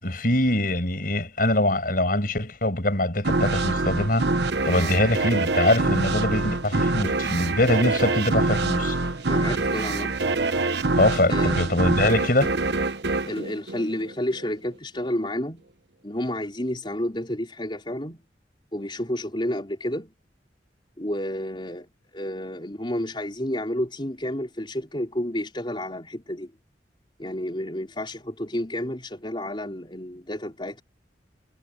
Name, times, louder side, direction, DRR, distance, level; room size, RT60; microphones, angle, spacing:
voice 1, 0.0-4.3 4.6-9.0 11.0-12.5, left 1 dB, 50° left, 7.2 m, -23 dB
sound 1, 3.2-14.4, right 3 dB, 70° right, 1.1 m, -25 dB
voice 2, 9.3-10.2 11.3-11.7 13.2-15.7 16.0-18.2 18.7-20.1 21.0-26.5 27.2-30.8, left 1 dB, 30° left, 4.2 m, -30 dB
head